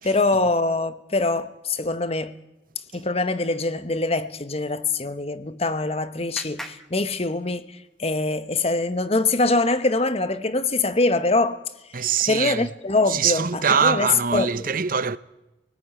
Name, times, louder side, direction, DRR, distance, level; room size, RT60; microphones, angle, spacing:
voice 1, 0.0-2.3 2.9-7.7 8.0-11.6 12.3-14.1 14.3-14.5, left 2 dB, 35° left, 1.1 m, -23 dB
Clapping, 5.2-7.9, equal, ahead, 1.6 m, -44 dB
voice 2, 11.9-12.7 13.1-15.2, right 6 dB, 50° right, 0.8 m, -23 dB
28.5 x 18.5 x 9.0 m
head